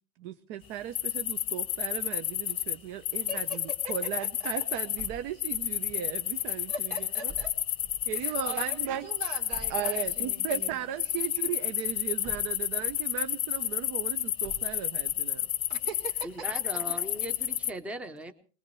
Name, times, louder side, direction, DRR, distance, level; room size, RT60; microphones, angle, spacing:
voice 1, 0.2-7.3 8.1-9.1 9.7-15.5, right 11 dB, 60° right, 12 dB, 0.7 m, -36 dB
sound 1, 0.9-2.8 3.0-5.1 5.4-10.7 11.0-17.7, left 12 dB, 30° left, 0.7 m, -31 dB
voice 2, 3.3-4.1 6.7-7.5 8.1-10.8 15.7-16.6, right 4 dB, 75° right, 5 dB, 3.4 m, -42 dB
sound 2, 5.0-5.9 7.3-8.2 9.5-10.5 12.2-13.1 14.4-15.3, right 2 dB, 35° right, 2.0 m, -49 dB
voice 3, 16.2-18.3, right 1 dB, 5° right, 9 dB, 0.7 m, -38 dB
23.0 x 20.5 x 3.1 m, 0.39 s
cardioid pair, 165°, 19 cm